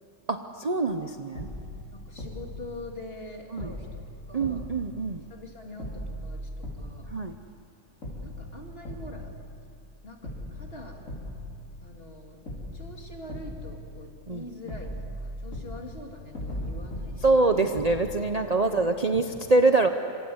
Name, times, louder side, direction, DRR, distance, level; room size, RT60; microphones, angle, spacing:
voice 1, 0.3-1.5 3.5-3.7 4.3-5.2 7.1-7.3 14.3-14.4 17.2-19.9, right 3 dB, 35° right, 5 dB, 0.8 m, -24 dB
sound 1, 0.9-1.0 1.3-3.3 3.6-5.5 5.8-7.7 8.0-9.9 10.2-12.1 12.5-14.4 14.7-18.8 19.1-19.2, left 1 dB, 70° left, 5.7 m, -39 dB
voice 2, 1.9-4.7 5.3-7.2 8.2-9.3 10.0-11.0 11.8-12.4 12.7-17.7 18.6-18.9, left 1 dB, 45° left, 1 dB, 3.2 m, -44 dB
26.0 x 26.0 x 8.0 m, 2.5 s
omnidirectional pair, 1.4 m